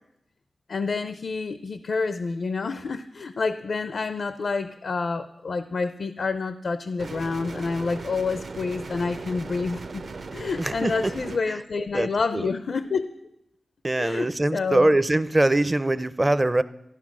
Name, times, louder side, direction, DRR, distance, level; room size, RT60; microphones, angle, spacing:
voice 1, 0.7-10.0 10.3-13.1 14.0-14.9, left 4 dB, 70° left, 12 dB, 0.6 m, -28 dB
sound 1, 7.0-11.4, right 4 dB, 60° right, 0.7 m, -38 dB
voice 2, 10.6-11.1 11.5-11.6 11.9-12.5 13.8-16.6, right 1 dB, 20° right, 14 dB, 0.5 m, -23 dB
14.0 x 11.0 x 6.1 m, 0.82 s
wide cardioid pair, 140°, 0 cm